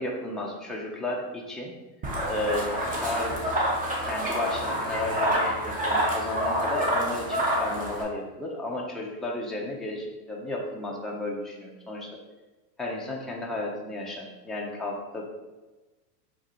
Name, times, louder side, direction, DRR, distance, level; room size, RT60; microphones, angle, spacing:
voice 1, 0.0-1.7 2.3-2.7 3.0-3.4 4.0-12.1 12.8-15.3, left 2 dB, ahead, -3 dB, 0.6 m, -33 dB
sound 1, 2.0-8.0, equal, 15° right, 0.9 m, -27 dB
4.6 x 2.6 x 4.2 m, 1.1 s
supercardioid pair, 120°, 48 cm